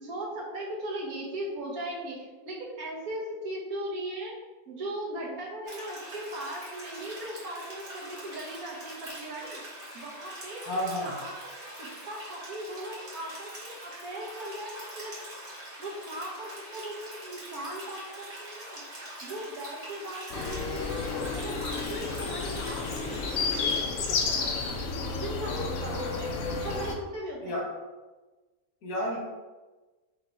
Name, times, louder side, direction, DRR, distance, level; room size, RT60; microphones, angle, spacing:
voice 1, 0.0-4.4 4.6-9.6 9.9-10.8 11.0-15.5 15.8-18.8 19.2-24.9 25.2-27.6, right 1 dB, 75° right, -3 dB, 1.5 m, -38 dB
sound 1, 5.6-23.8, right 1 dB, 40° right, 1.5 m, -43 dB
voice 2, 10.7-11.1 27.4-27.7 28.8-29.2, equal, 90° left, -1 dB, 1.7 m, -30 dB
sound 2, 20.3-27.0, left 4 dB, 70° left, 1.0 m, -31 dB
4.2 x 2.9 x 4.3 m, 1.2 s
omnidirectional pair, 1.6 m